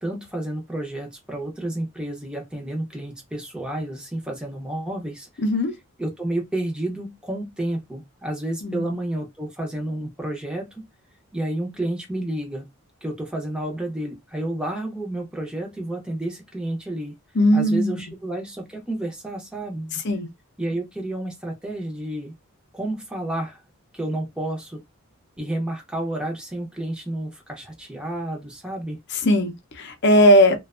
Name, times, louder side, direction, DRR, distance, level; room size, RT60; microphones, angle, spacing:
voice 1, 0.0-5.4 6.0-10.9 11.3-12.7 13.0-17.1 17.5-20.0 20.6-22.3 22.7-23.6 23.9-24.8 25.4-29.0, right 1 dB, 5° right, 0.6 m, -30 dB
voice 2, 5.4-5.7 8.6-8.9 17.4-18.0 20.0-20.3 29.2-30.6, equal, 50° left, 0.6 m, -18 dB
2.4 x 2.2 x 2.4 m
head